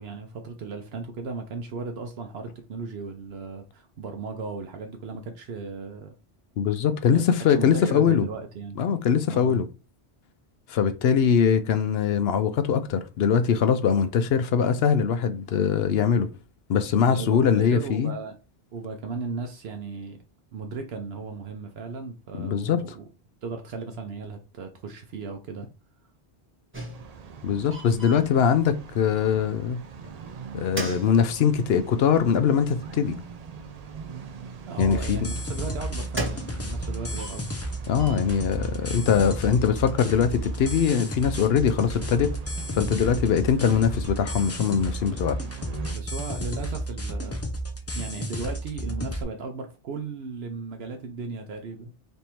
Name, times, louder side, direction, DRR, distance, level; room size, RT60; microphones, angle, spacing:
voice 1, 0.0-6.1 7.1-8.9 9.3-9.6 17.1-18.4 18.7-20.2 20.5-23.1 23.4-25.7 34.7-37.5 45.9-47.4 47.9-51.9, right 4 dB, 75° right, 0.9 m, -36 dB
voice 2, 6.6-8.3 8.8-9.6 10.7-16.3 16.7-18.1 22.4-22.8 27.4-29.8 30.5-33.2 34.8-35.3 37.9-42.3 42.7-45.4, left 7 dB, 70° left, 0.8 m, -22 dB
sound 1, 26.7-27.4 27.7-29.0 30.0-30.2 30.5-31.9 32.8-32.9 33.9-34.0 35.2-36.8 37.1-38.3, right 1 dB, 10° right, 1.2 m, -36 dB
sound 2, 26.9-46.0, right 6 dB, 55° right, 0.5 m, -43 dB
sound 3, 34.8-49.2, equal, 20° left, 0.4 m, -32 dB
3.3 x 2.6 x 4.3 m
omnidirectional pair, 1.1 m